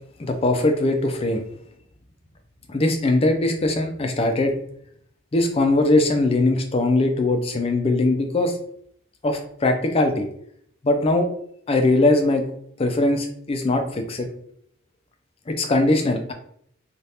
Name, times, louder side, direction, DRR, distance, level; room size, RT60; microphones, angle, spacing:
voice 1, 0.2-1.4 2.7-4.5 5.3-8.5 9.2-10.3 10.8-11.3 11.7-12.4 12.8-14.3 15.5-16.3, left 2 dB, 30° left, 5 dB, 0.4 m, -21 dB
3.3 x 2.4 x 2.8 m, 0.67 s
head